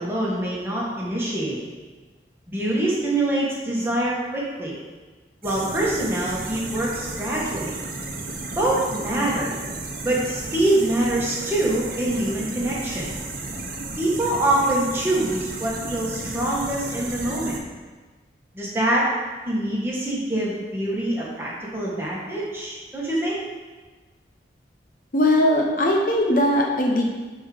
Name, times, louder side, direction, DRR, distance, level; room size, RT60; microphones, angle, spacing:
voice 1, 0.0-1.6 2.5-4.7 5.4-7.7 8.5-9.5 10.0-13.1 14.0-17.5 18.5-19.0 19.4-23.4, right 1 dB, 15° right, -6 dB, 1.7 m, -24 dB
sound 1, 5.4-17.6, right 2 dB, 50° right, 0.9 m, -33 dB
voice 2, 25.1-27.0, left 1 dB, 50° left, 0 dB, 0.9 m, -19 dB
10.5 x 3.9 x 5.1 m, 1.3 s
head